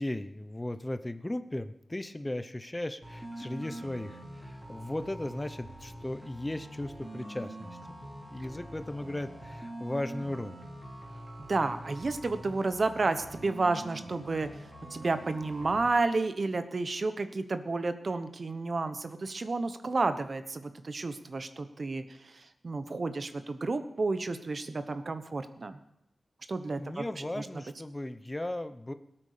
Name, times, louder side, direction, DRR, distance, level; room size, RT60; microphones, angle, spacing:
voice 1, 0.0-7.7 8.3-10.5 26.8-28.9, left 1 dB, 20° left, 11 dB, 0.9 m, -36 dB
sound 1, 3.0-15.8, right 1 dB, 15° right, 3.3 m, -45 dB
voice 2, 11.5-14.5 14.9-22.0 22.6-25.8 26.5-27.0 27.4-27.5, right 3 dB, 55° right, 10 dB, 1.1 m, -31 dB
17.5 x 8.9 x 6.7 m, 0.80 s
wide cardioid pair, 65°, 0 cm